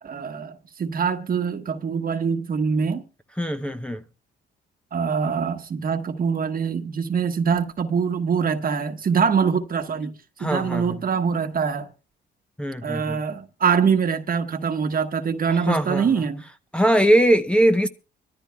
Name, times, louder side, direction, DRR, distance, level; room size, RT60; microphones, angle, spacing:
voice 1, 0.0-3.0 4.9-11.9 12.8-16.4, right 6 dB, 45° right, 1.3 m, -24 dB
voice 2, 3.4-4.0 10.4-10.9 12.6-13.2 15.7-16.1 16.7-17.9, equal, 5° left, 0.8 m, -20 dB
25.0 x 13.5 x 2.3 m
cardioid pair, 90°, 20 cm